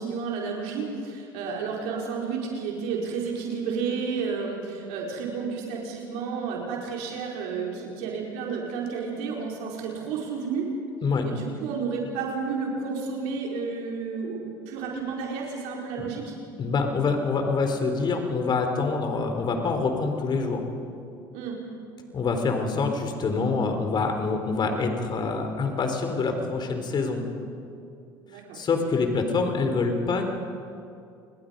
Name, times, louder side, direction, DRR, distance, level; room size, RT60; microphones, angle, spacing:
voice 1, 0.0-10.7 11.2-14.4 14.7-16.3 21.3-21.6 28.2-28.6, right 5 dB, 70° right, -1 dB, 4.7 m, -31 dB
voice 2, 16.6-20.6 22.1-27.2 28.5-30.3, left 4 dB, 40° left, 5 dB, 3.8 m, -26 dB
30.0 x 21.0 x 5.4 m, 2.5 s
hypercardioid pair, 75°, 12 cm